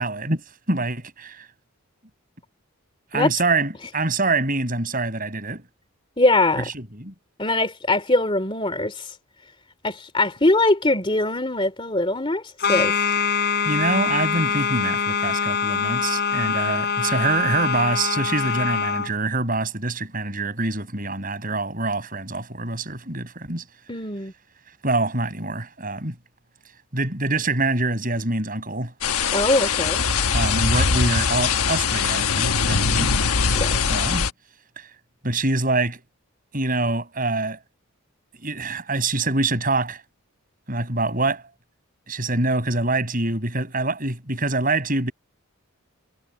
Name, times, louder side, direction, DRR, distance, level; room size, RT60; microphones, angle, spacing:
voice 1, 0.0-1.5 3.1-5.6 6.6-7.1 13.7-23.6 24.8-26.2 26.9-28.9 30.3-33.1 33.8-34.3 34.8-34.9 35.2-36.0 36.5-37.6 38.4-40.0 40.7-41.5 42.1-45.1, right 2 dB, 40° right, 7.2 m, -25 dB
voice 2, 6.2-6.7 7.4-9.1 9.8-12.4 12.7-13.0 23.9-24.3 29.3-30.1 33.5-34.0, left 2 dB, 25° left, 2.8 m, -22 dB
sound 1, 12.6-19.1, left 6 dB, 50° left, 4.3 m, -24 dB
sound 2, 29.0-34.3, left 5 dB, 90° left, 1.3 m, -22 dB
head